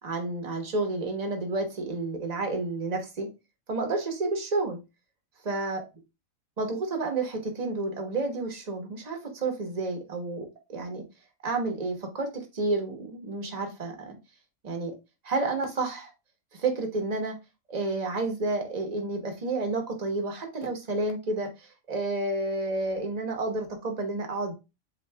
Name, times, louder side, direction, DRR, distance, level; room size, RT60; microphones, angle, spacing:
voice 1, 0.0-3.3 3.7-4.8 5.4-5.8 6.6-11.0 11.4-14.2 14.6-15.0 15.2-16.1 16.5-17.4 17.7-24.5, right 2 dB, 30° right, 3 dB, 1.1 m, -30 dB
7.7 x 2.6 x 2.2 m, 0.25 s
omnidirectional pair, 1.5 m